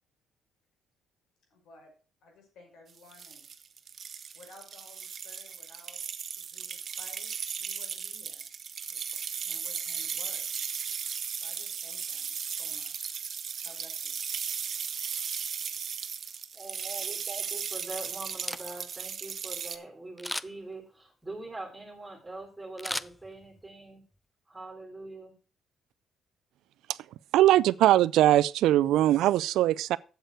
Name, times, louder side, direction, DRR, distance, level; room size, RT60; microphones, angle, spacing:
voice 1, 1.5-1.9 2.2-3.5 4.3-6.1 6.4-8.4 8.9-9.0 9.5-10.5 11.4-13.1 13.6-14.2, left 2 dB, 80° left, 5.5 m, -55 dB
sound 1, 3.0-19.8, right 7 dB, 50° right, 1.1 m, -36 dB
voice 2, 16.5-24.0 24.5-25.3, right 2 dB, 10° right, 3.5 m, -43 dB
Camera, 18.3-19.0 20.2-20.7 22.8-23.7 24.1-24.2, left 1 dB, 5° left, 0.4 m, -37 dB
voice 3, 27.3-30.0, right 14 dB, 85° right, 0.4 m, -21 dB
8.1 x 8.0 x 6.3 m
cardioid pair, 90°, 0 cm